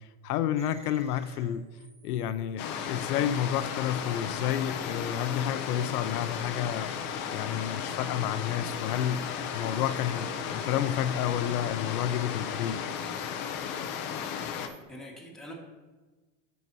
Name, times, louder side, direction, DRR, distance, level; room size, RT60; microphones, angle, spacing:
voice 1, 0.0-1.7 2.0-6.9 7.3-9.3 9.5-12.8, left 10 dB, 80° left, 13 dB, 0.6 m, -30 dB
sound 1, 0.5-12.3 12.6-14.8, right 3 dB, 15° right, 0.9 m, -56 dB
sound 2, 2.6-14.7, left 8 dB, 25° left, 0.4 m, -35 dB
voice 2, 14.5-15.5, left 1 dB, ahead, -3 dB, 1.4 m, -46 dB
12.0 x 5.8 x 2.7 m, 1.3 s
supercardioid pair, 145°, 45 cm